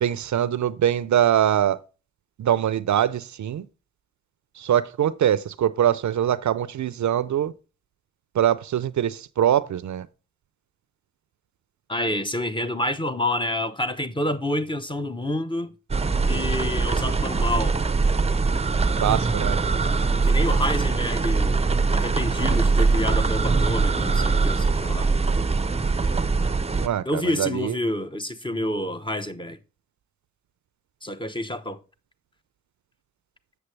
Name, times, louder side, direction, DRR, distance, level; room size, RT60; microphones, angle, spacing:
voice 1, 0.0-1.8 2.4-3.6 4.6-7.5 8.3-10.1 19.0-19.6 26.8-27.7, right 10 dB, 65° right, 0.5 m, -23 dB
voice 2, 11.9-15.7 16.2-17.8 20.2-21.6 21.9-25.1 27.0-29.6 31.0-31.8, left 1 dB, 15° left, 0.8 m, -28 dB
sound 1, 15.9-26.9, right 4 dB, 20° right, 0.6 m, -22 dB
7.8 x 6.5 x 3.2 m
cardioid pair, 55°, 31 cm